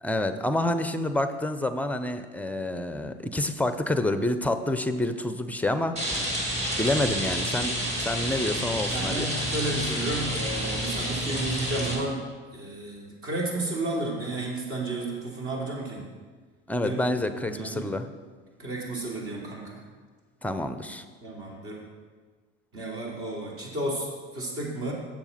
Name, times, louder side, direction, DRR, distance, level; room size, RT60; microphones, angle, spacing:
voice 1, 0.0-5.9 6.8-9.3 16.7-18.1 20.4-21.0, left 1 dB, 5° left, 10 dB, 0.6 m, -28 dB
Rain, 6.0-11.9, equal, 20° right, 2.5 m, -29 dB
voice 2, 8.9-12.2 12.5-16.0 16.8-17.0 17.3-17.9 18.6-19.8 21.2-21.8 22.7-24.9, right 2 dB, 45° right, -2 dB, 3.1 m, -32 dB
7.7 x 7.0 x 5.7 m, 1.4 s
supercardioid pair, 95°, 31 cm